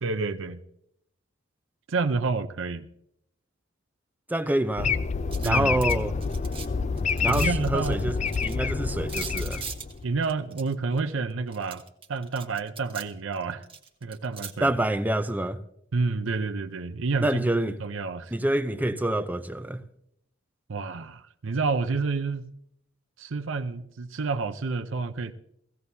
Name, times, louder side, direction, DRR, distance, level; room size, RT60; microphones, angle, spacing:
voice 1, 0.0-0.6 1.9-2.8 5.4-5.8 7.3-8.1 10.0-11.8 12.1-13.6 14.0-14.7 15.9-17.4 17.8-18.3 20.7-22.5 23.2-25.3, right 4 dB, 70° right, 0.6 m, -29 dB
voice 2, 4.3-4.9 5.4-6.1 7.2-8.2 8.4-9.6 14.6-15.6 17.2-17.8 18.3-19.8, right 1 dB, 10° right, 0.6 m, -26 dB
sound 1, 4.8-10.2, left 5 dB, 35° left, 0.4 m, -28 dB
sound 2, 5.3-6.7 7.0-8.6 9.1-11.0 11.5-13.1 13.3-14.5, right 6 dB, 25° right, 1.2 m, -40 dB
17.5 x 15.5 x 2.7 m
head